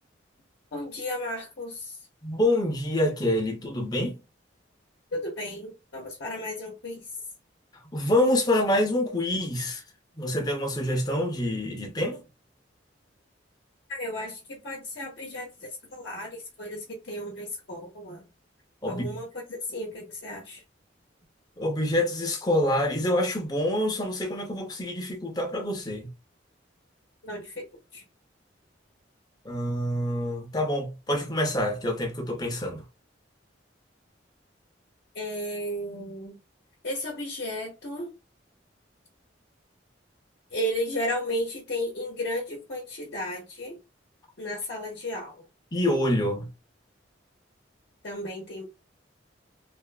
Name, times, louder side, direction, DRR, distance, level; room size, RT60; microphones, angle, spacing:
voice 1, 0.7-2.0 5.1-7.1 13.9-18.2 18.9-20.6 27.2-27.6 27.9-28.0 35.1-36.4 36.8-38.1 40.5-43.8 44.4-45.4 48.0-48.7, left 1 dB, 60° left, 0.7 m, -34 dB
voice 2, 2.2-4.2 7.9-9.8 10.2-12.2 18.8-19.2 21.6-26.1 29.4-32.8 45.7-46.5, left 1 dB, 20° left, 0.6 m, -26 dB
2.5 x 2.5 x 2.2 m
head